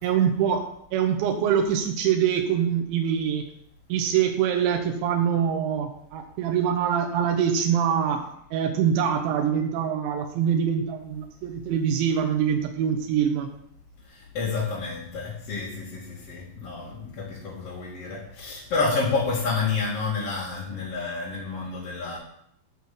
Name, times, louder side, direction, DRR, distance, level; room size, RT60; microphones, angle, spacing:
voice 1, 0.0-0.7 0.9-3.4 3.9-13.5, right 8 dB, 90° right, 3 dB, 3.3 m, -24 dB
voice 2, 14.1-22.2, left 4 dB, 40° left, -8 dB, 2.8 m, -29 dB
11.0 x 5.5 x 7.6 m, 0.72 s
omnidirectional pair, 5.1 m